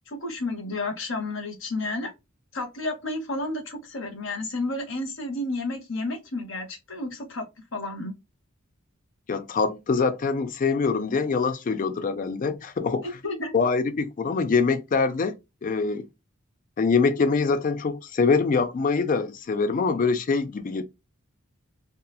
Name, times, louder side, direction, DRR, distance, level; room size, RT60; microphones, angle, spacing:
voice 1, 0.1-2.1 2.5-7.4 7.7-8.1 13.0-13.5, left 2 dB, 60° left, 0.9 m, -31 dB
voice 2, 9.3-13.0 13.5-15.3 15.6-16.0 16.8-20.8, left 4 dB, 40° left, 0.4 m, -24 dB
2.8 x 2.3 x 2.3 m
head